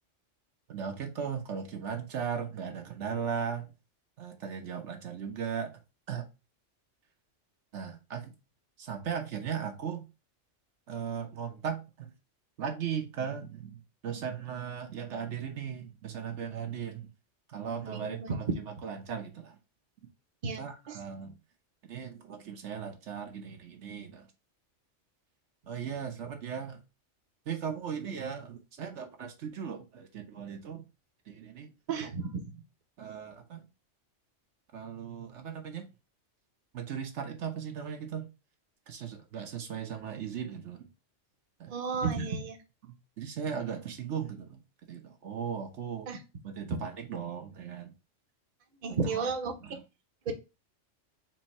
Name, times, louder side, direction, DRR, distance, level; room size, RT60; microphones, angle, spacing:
voice 1, 0.7-3.7 4.2-5.7 6.1-6.3 7.7-8.3 8.8-10.0 10.9-12.1 12.6-17.1 17.5-19.6 20.6-21.3 21.8-24.3 25.7-26.8 27.5-30.9 31.3-31.7 32.0-32.1 33.0-33.6 34.7-35.8 36.7-38.3 38.9-40.9 41.6-41.8 42.0-42.3 42.8-44.6 44.9-46.1 46.4-47.9 48.9-49.3 49.6-49.8, right 7 dB, 75° right, 1.1 m, -37 dB
voice 2, 17.9-18.3 20.4-21.0 31.9-32.6 41.7-42.5 46.1-46.2 46.7-46.8 48.8-49.6 50.3-50.4, right 4 dB, 45° right, 0.9 m, -33 dB
4.4 x 2.8 x 4.1 m
omnidirectional pair, 1.2 m